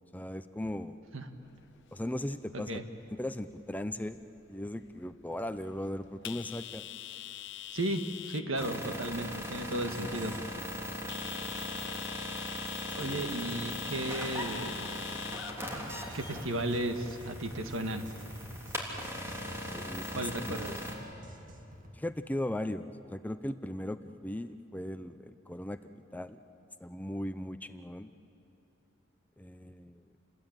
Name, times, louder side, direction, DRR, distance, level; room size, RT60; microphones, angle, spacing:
voice 1, 0.1-1.0 1.9-2.8 3.2-4.2 4.5-6.9 12.9-13.2 19.7-20.1 20.5-20.8 21.9-25.8 26.1-26.4 26.8-28.1 29.4-30.0, left 1 dB, 10° left, 10 dB, 0.5 m, -38 dB
sound 1, 1.2-17.3, left 13 dB, 60° left, 0.7 m, -46 dB
voice 2, 2.5-2.8 7.7-8.0 8.3-10.4 12.9-14.9 16.1-18.1 20.1-20.8, right 1 dB, 75° right, 6 dB, 1.8 m, -34 dB
sound 2, 8.5-20.9, equal, 15° right, 3.5 m, -39 dB
sound 3, 15.9-22.0, equal, 40° right, 2.0 m, -49 dB
28.5 x 21.0 x 9.0 m, 2.8 s
head